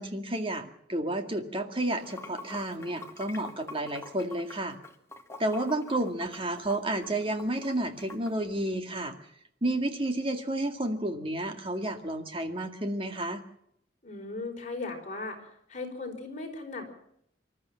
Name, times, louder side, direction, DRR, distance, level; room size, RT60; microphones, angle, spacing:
voice 1, 0.0-4.8 5.4-9.1 9.6-13.4, right 1 dB, 30° right, 6 dB, 2.1 m, -31 dB
Water / Sink (filling or washing), 1.8-8.3, left 3 dB, 15° left, 1.7 m, -46 dB
voice 2, 14.0-15.4 15.7-16.9, left 3 dB, 40° left, 3 dB, 4.8 m, -37 dB
26.0 x 13.0 x 7.7 m, 0.74 s
head